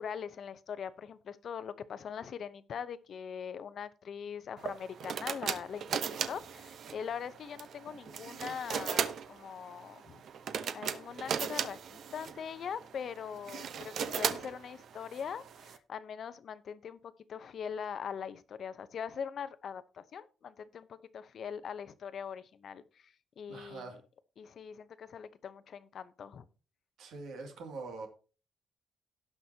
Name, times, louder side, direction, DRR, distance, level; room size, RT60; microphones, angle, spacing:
voice 1, 0.0-10.2 10.7-24.0 24.4-26.5, left 7 dB, 50° left, 0.8 m, -42 dB
sound 1, 4.6-15.8, right 7 dB, 55° right, 0.9 m, -38 dB
voice 2, 23.5-24.0 27.0-28.1, right 3 dB, 80° right, 2.5 m, -43 dB
18.0 x 6.0 x 2.8 m
cardioid pair, 150°, 0 cm